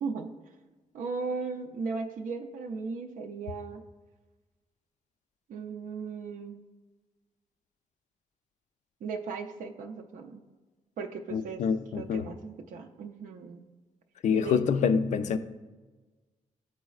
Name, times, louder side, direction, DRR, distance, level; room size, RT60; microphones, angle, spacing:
voice 1, 0.0-0.3 0.9-3.8 5.5-6.6 9.0-10.4 11.0-11.6 11.9-13.7 14.3-14.7, right 4 dB, 85° right, 0.4 m, -37 dB
voice 2, 11.3-12.3 14.2-15.4, left 6 dB, 65° left, 0.4 m, -26 dB
11.5 x 4.1 x 2.4 m
cardioid pair, 95°, 13 cm